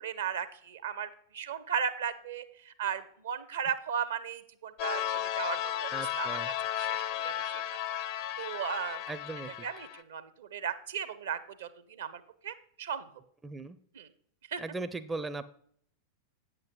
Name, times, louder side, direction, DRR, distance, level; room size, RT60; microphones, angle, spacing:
voice 1, 0.0-5.9 6.2-6.4 6.8-7.6 8.4-9.0 9.6-13.1 13.9-14.1 14.5-14.6, right 7 dB, 60° right, 13 dB, 0.6 m, -36 dB
sound 1, 4.8-10.0, left 11 dB, 45° left, 0.5 m, -34 dB
voice 2, 5.9-6.5 9.1-9.7 13.4-13.8 14.6-15.4, right 3 dB, 10° right, 11 dB, 0.4 m, -38 dB
8.7 x 7.7 x 3.8 m, 0.63 s
figure-of-eight pair, 90°, 0 cm